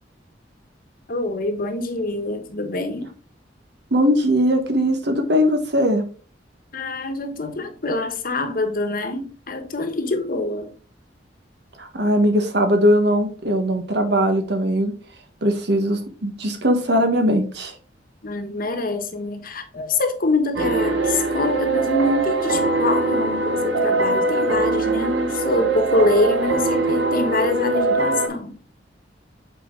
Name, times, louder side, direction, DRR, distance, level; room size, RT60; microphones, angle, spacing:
voice 1, 1.1-3.1 6.7-10.7 18.2-28.6, left 2 dB, 55° left, 1.2 m, -25 dB
voice 2, 3.9-6.0 11.8-14.9 15.4-17.7, equal, 65° right, 1.4 m, -20 dB
sound 1, 20.6-28.3, right 3 dB, 85° right, 1.4 m, -22 dB
8.0 x 4.4 x 3.8 m
head